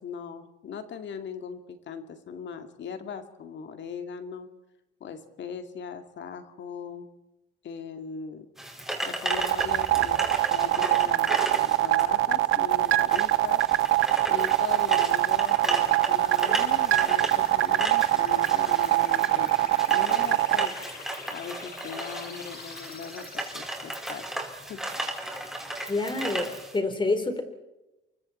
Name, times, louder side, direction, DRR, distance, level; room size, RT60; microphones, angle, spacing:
voice 1, 0.0-4.5 5.0-7.1 7.6-8.5 9.0-10.2 10.5-13.7 14.3-20.8 21.3-24.3 24.7-24.9, left 6 dB, 65° left, 8 dB, 2.2 m, -39 dB
sound 1, 8.6-26.8, right 1 dB, ahead, 4.9 m, -35 dB
sound 2, 9.3-23.5, left 4 dB, 50° left, 5.3 m, -45 dB
sound 3, 9.3-20.7, right 16 dB, 85° right, 0.8 m, -22 dB
voice 2, 25.9-27.4, left 3 dB, 25° left, 7 dB, 3.8 m, -27 dB
29.5 x 24.0 x 4.4 m, 0.99 s
cardioid pair, 90°, 20 cm